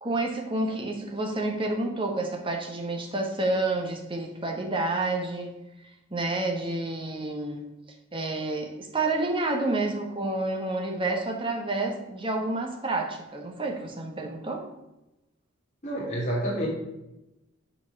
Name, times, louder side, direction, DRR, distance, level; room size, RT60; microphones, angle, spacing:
voice 1, 0.0-5.5 6.1-7.6 8.1-14.6, right 2 dB, 25° right, 2 dB, 1.2 m, -29 dB
voice 2, 15.8-16.7, equal, 35° left, -6 dB, 2.5 m, -28 dB
8.4 x 4.5 x 5.9 m, 0.94 s
head